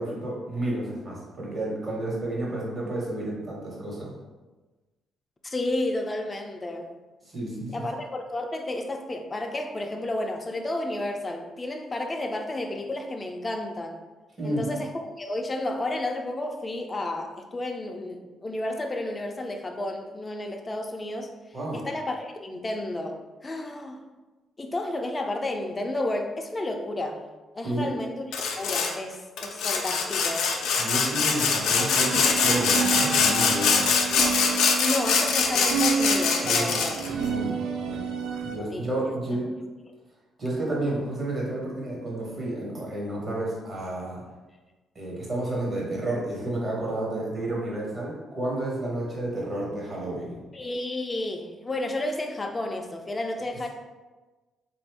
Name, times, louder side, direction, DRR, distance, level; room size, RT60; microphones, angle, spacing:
voice 1, 0.0-4.1 7.2-7.9 14.4-14.7 21.5-21.8 27.6-27.9 30.8-33.9 36.4-38.1 38.4-39.5 40.4-44.2 44.9-50.4, right 1 dB, 40° right, -4 dB, 1.3 m, -31 dB
voice 2, 5.4-6.9 7.7-14.0 14.4-21.3 21.7-24.0 24.6-27.2 27.6-28.2 28.6-30.5 34.8-37.0 38.7-38.9 50.5-53.7, left 1 dB, 25° left, 3 dB, 0.5 m, -31 dB
Sawing, 28.3-28.9 29.4-37.1, left 5 dB, 80° left, 0.5 m, -23 dB
sound 1, 32.0-38.6, right 6 dB, 85° right, 0.4 m, -30 dB
3.7 x 2.5 x 3.5 m, 1.2 s
cardioid pair, 90°, 0 cm